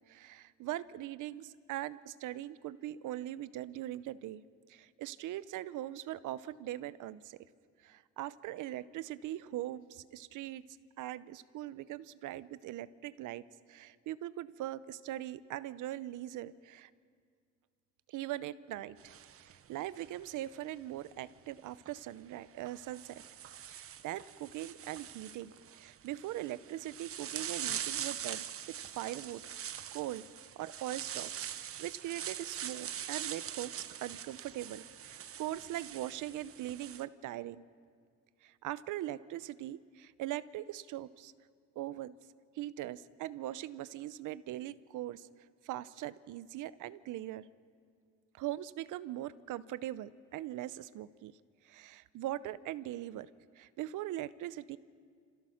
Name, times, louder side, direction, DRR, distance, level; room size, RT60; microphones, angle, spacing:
voice 1, 0.1-4.4 4.7-7.4 7.8-10.6 11.0-13.4 13.7-16.9 18.1-19.1 19.5-23.2 23.7-28.5 28.9-30.2 30.6-37.7 38.4-41.3 41.8-42.1 42.5-45.3 45.6-47.4 48.3-51.3 51.6-53.3 53.6-54.8, right 14 dB, 85° right, 17 dB, 0.7 m, -41 dB
sound 1, 19.0-20.5 21.7-21.9 22.6-37.0, right 9 dB, 50° right, 0.7 m, -43 dB
26.5 x 15.5 x 6.5 m, 2.1 s
cardioid pair, 90°, 30 cm